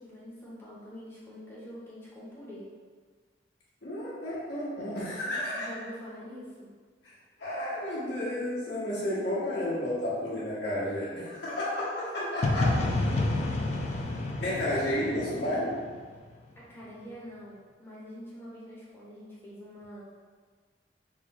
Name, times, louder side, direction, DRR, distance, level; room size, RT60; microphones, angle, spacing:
voice 1, 0.0-2.7 5.6-6.7 12.1-12.6 16.6-20.0, equal, 15° left, -7 dB, 0.7 m, -45 dB
voice 2, 3.8-5.7 7.0-7.1 7.4-12.7 14.4-15.8, left 1 dB, 90° left, -8 dB, 1.1 m, -31 dB
sound 1, 12.4-16.3, left 2 dB, 40° left, 0.3 m, -29 dB
3.8 x 2.2 x 2.8 m, 1.5 s
head